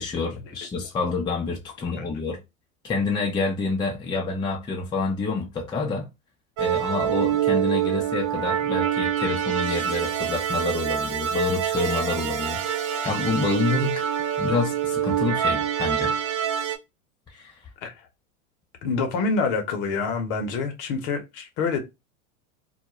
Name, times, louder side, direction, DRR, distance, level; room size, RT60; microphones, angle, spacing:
voice 1, 0.0-2.4 2.8-6.1 6.6-14.1 14.4-16.1 17.3-17.6, left 4 dB, 10° left, 0.5 m, -28 dB
sound 1, 6.6-16.8, right 9 dB, 55° right, 0.7 m, -26 dB
voice 2, 18.8-21.8, left 4 dB, 50° left, 0.9 m, -26 dB
2.4 x 2.1 x 2.9 m
hypercardioid pair, 100°, 42 cm